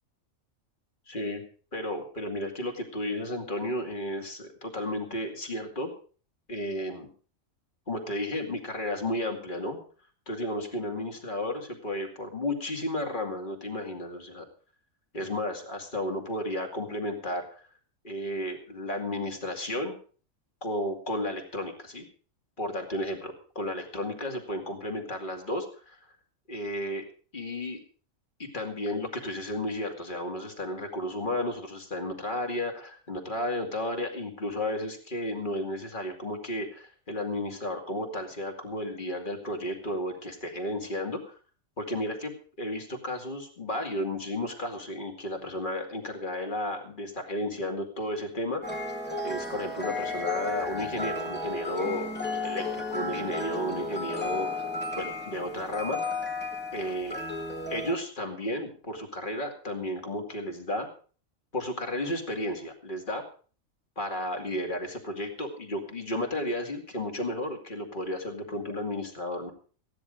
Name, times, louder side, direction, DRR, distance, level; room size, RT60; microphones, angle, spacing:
voice 1, 1.1-1.4 1.7-5.9 6.5-7.1 7.9-9.8 10.3-14.5 15.1-17.6 18.0-20.0 20.6-22.0 22.6-26.0 26.5-27.1 27.3-27.8 28.4-41.3 41.8-42.3 42.6-48.9 49.2-52.1 52.4-54.7 55.0-56.3 56.7-57.2 57.7-60.9 61.5-63.2 64.0-69.5, left 1 dB, 35° left, 3 dB, 2.5 m, -33 dB
sound 1, 48.6-57.9, left 2 dB, 10° left, 1.9 m, -33 dB
15.5 x 10.5 x 5.1 m, 0.40 s
omnidirectional pair, 1.4 m